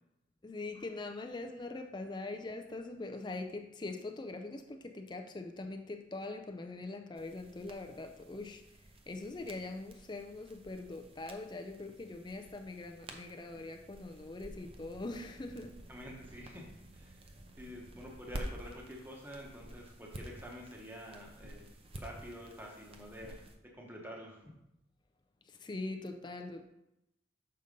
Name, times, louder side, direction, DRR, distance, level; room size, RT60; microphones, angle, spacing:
voice 1, 0.4-8.6 9.1-15.8 25.5-26.7, left 2 dB, 25° left, 6 dB, 0.4 m, -42 dB
sound 1, 7.1-23.5, right 1 dB, 30° right, 0.6 m, -50 dB
voice 2, 15.9-16.7 16.9-17.2 17.6-21.7 22.0-23.4 23.7-24.4, equal, 10° right, -1 dB, 0.9 m, -48 dB
6.5 x 4.0 x 5.2 m, 0.87 s
head